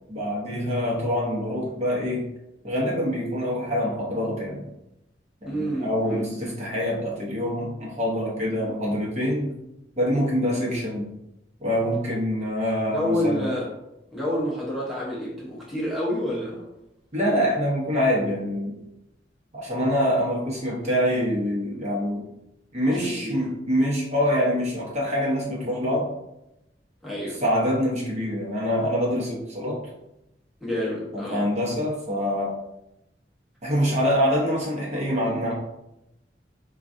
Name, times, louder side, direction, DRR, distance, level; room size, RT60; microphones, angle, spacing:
voice 1, 0.1-2.3 2.6-4.7 5.4-9.5 10.0-11.1 11.6-13.5 17.1-18.9 19.5-22.2 22.7-26.1 27.4-29.8 31.1-32.5 33.6-35.5, equal, 40° right, -4 dB, 0.9 m, -25 dB
voice 2, 5.4-6.5 12.9-13.7 14.1-16.6 22.9-23.4 27.0-27.4 30.6-31.4, equal, ahead, -7 dB, 0.8 m, -28 dB
4.5 x 2.4 x 2.6 m, 0.88 s
head